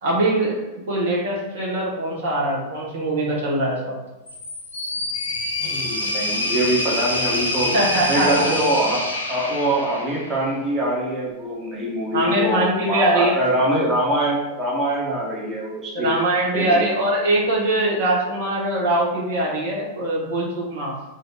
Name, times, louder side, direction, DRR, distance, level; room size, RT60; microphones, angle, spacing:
voice 1, 0.0-4.0 7.7-8.5 12.1-13.4 15.9-21.0, right 1 dB, 60° right, -4 dB, 1.2 m, -22 dB
sound 1, 4.3-10.5, left 1 dB, 80° left, 0.7 m, -26 dB
voice 2, 5.6-7.7 8.1-9.0 9.3-16.1 16.5-16.9, right 1 dB, 20° right, -5 dB, 1.2 m, -23 dB
3.2 x 2.7 x 4.5 m, 1.1 s
figure-of-eight pair, 90°, 0 cm